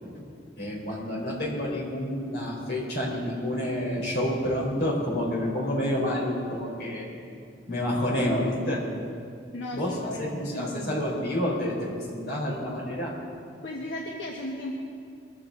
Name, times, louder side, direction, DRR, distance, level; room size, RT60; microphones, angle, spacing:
voice 1, 0.0-7.1 7.7-8.8 9.7-13.1, left 1 dB, 60° left, -3 dB, 4.2 m, -29 dB
voice 2, 9.5-11.1 13.6-14.8, left 1 dB, 75° left, -1 dB, 1.4 m, -36 dB
22.5 x 14.5 x 3.9 m, 2.4 s
head